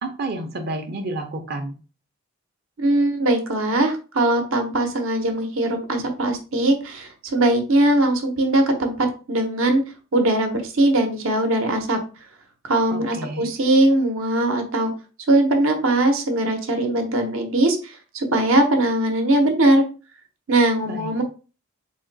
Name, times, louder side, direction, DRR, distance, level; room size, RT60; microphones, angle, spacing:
voice 1, 0.0-1.7 12.9-13.5 20.8-21.1, right 2 dB, 50° right, 5 dB, 0.6 m, -30 dB
voice 2, 2.8-9.8 10.1-12.0 12.7-14.9 15.3-19.8 20.5-21.2, right 1 dB, 75° right, 4 dB, 0.8 m, -20 dB
3.5 x 2.2 x 3.9 m, 0.34 s
head